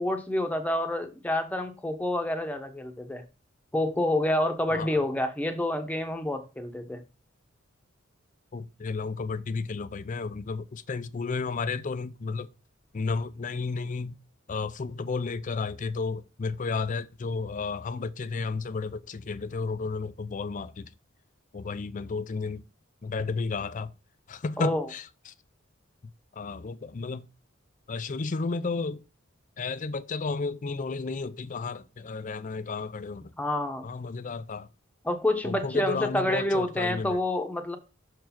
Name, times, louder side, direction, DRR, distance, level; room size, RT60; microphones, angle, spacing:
voice 1, 0.0-3.2 3.7-7.0 24.6-24.9 33.4-33.8 35.0-37.8, left 1 dB, 5° left, 1.0 m, -28 dB
voice 2, 8.5-12.5 12.9-14.2 14.5-20.9 21.5-22.6 23.0-23.9 24.3-25.3 26.4-27.3 27.9-29.0 29.6-33.3 33.8-34.7 35.4-37.2, left 4 dB, 40° left, 0.4 m, -32 dB
6.2 x 4.6 x 5.8 m
head